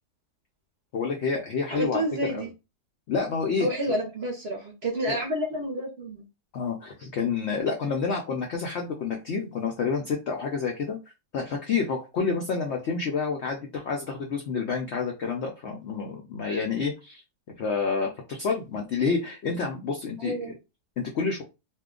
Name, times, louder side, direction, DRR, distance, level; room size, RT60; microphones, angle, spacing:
voice 1, 0.9-2.4 3.1-3.7 5.1-5.2 6.5-11.0 11.3-17.2 17.6-20.6 21.0-21.4, left 5 dB, 75° left, 1 dB, 0.6 m, -29 dB
voice 2, 1.7-2.5 3.6-6.2 20.2-20.5, equal, 55° right, 0 dB, 0.7 m, -29 dB
2.7 x 2.1 x 3.6 m, 0.27 s
omnidirectional pair, 1.8 m